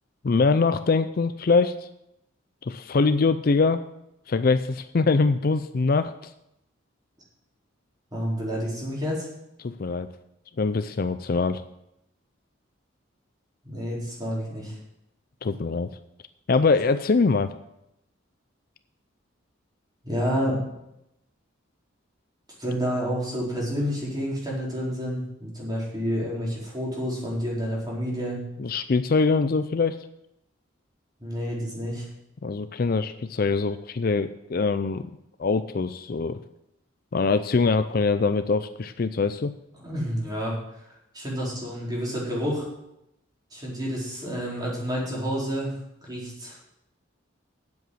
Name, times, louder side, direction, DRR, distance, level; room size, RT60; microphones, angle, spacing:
voice 1, 0.2-1.9 2.6-3.8 4.3-6.3 9.6-10.1 10.6-11.6 15.4-15.9 16.5-17.6 28.6-30.0 32.4-35.1 35.4-36.4 37.1-39.5, left 4 dB, 45° left, 11 dB, 0.4 m, -23 dB
voice 2, 8.1-9.3 13.6-14.8 20.0-20.6 22.6-28.4 31.2-32.1 39.8-40.6 41.1-42.7 43.5-45.7 46.1-46.6, equal, 20° right, -5 dB, 4.1 m, -29 dB
9.5 x 7.9 x 7.7 m, 0.83 s
head